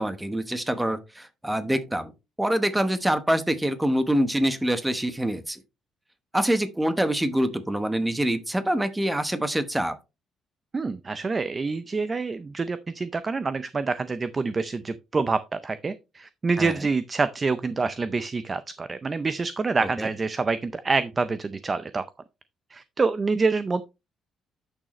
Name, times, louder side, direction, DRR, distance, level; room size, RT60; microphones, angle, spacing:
voice 1, 0.0-2.1 2.4-5.6 6.3-10.0 16.6-16.7 20.0-20.1, right 1 dB, 5° right, 1.0 m, -25 dB
voice 2, 10.7-22.0 22.7-23.8, right 4 dB, 20° right, 0.5 m, -27 dB
10.5 x 6.3 x 3.1 m
cardioid pair, 150°, 0 cm